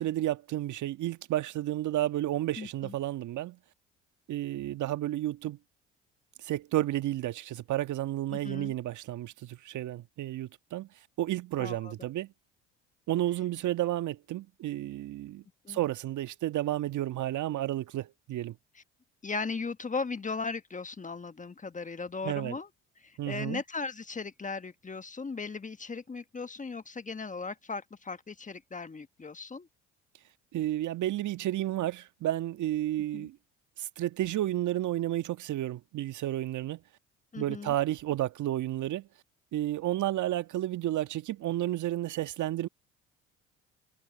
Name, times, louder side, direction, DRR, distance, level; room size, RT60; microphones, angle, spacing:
voice 1, 0.0-3.6 4.3-5.6 6.4-10.9 11.2-12.3 13.1-18.5 22.2-22.6 23.2-23.6 30.5-33.4 33.8-36.8 37.4-39.1 39.5-42.7, right 14 dB, 55° right, 1.8 m, -31 dB
voice 2, 2.6-2.9 8.3-8.7 11.6-11.9 15.6-15.8 18.7-18.8 19.2-22.7 23.0-29.7 33.1-33.3 37.3-37.7, left 4 dB, 20° left, 1.4 m, -37 dB
hypercardioid pair, 60°, 35 cm